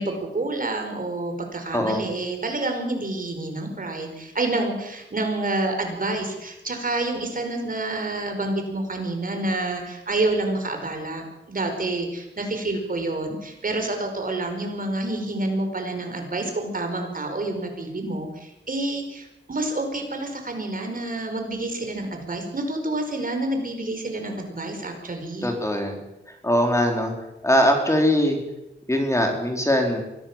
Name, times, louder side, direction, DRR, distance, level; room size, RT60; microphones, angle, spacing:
voice 1, 0.0-25.5, right 2 dB, 45° right, 4 dB, 5.1 m, -28 dB
voice 2, 1.7-2.1 25.4-26.0 26.4-27.1 27.4-28.4 28.9-30.0, equal, 15° left, 3 dB, 4.3 m, -21 dB
24.0 x 17.0 x 7.4 m, 0.91 s
wide cardioid pair, 115°, 20 cm